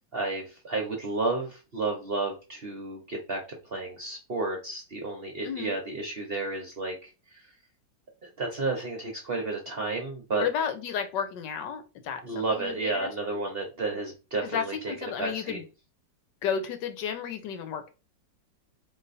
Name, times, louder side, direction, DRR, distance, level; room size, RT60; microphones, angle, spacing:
voice 1, 0.1-7.4 8.4-10.5 12.2-15.6, right 3 dB, 45° right, 1 dB, 0.8 m, -32 dB
voice 2, 5.4-5.8 10.4-13.4 14.4-15.6 16.4-17.9, left 7 dB, 75° left, 8 dB, 1.4 m, -33 dB
4.0 x 2.9 x 4.1 m, 0.30 s
omnidirectional pair, 2.0 m